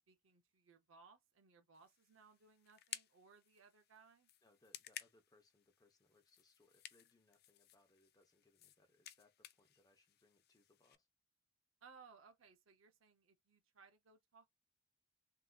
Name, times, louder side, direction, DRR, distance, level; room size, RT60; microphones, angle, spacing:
voice 1, 0.0-4.3 11.8-14.5, right 5 dB, 70° right, 0.7 m, -65 dB
sound 1, 1.7-10.9, left 12 dB, 50° left, 0.4 m, -57 dB
voice 2, 4.4-11.1, left 2 dB, 20° left, 0.8 m, -73 dB
3.6 x 2.8 x 2.3 m
head